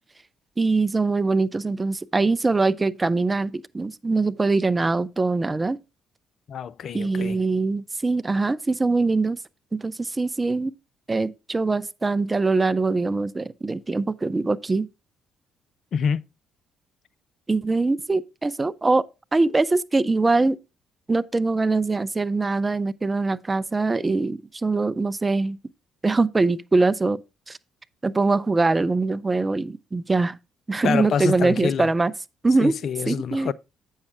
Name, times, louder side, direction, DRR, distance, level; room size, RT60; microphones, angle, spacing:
voice 1, 0.6-5.8 6.9-9.4 9.7-10.7 11.1-14.9 17.5-19.0 19.3-20.6 21.1-25.6 26.0-27.2 27.5-27.6 28.0-30.4 30.7-32.1 32.4-32.8 33.1-33.5, right 3 dB, 25° right, 0.5 m, -23 dB
voice 2, 6.5-7.4 15.9-16.3 30.8-31.9 32.6-33.5, left 7 dB, 55° left, 0.4 m, -26 dB
8.4 x 6.5 x 3.6 m
hypercardioid pair, 50°, 0 cm